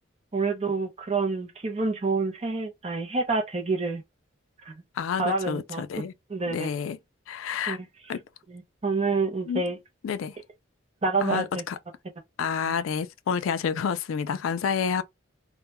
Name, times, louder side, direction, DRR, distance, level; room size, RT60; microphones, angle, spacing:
voice 1, 0.3-4.0 4.7-4.8 5.2-5.8 6.3-6.7 7.7-7.9 8.5-9.8 11.0-11.6 12.6-12.7, right 3 dB, 30° right, 0.5 m, -28 dB
voice 2, 5.0-6.1 6.5-7.0 7.3-7.8 8.1-8.2 9.5-9.6 10.0-10.4 11.2-11.8 12.4-15.0, left 6 dB, 90° left, 0.3 m, -29 dB
2.2 x 2.1 x 2.8 m
head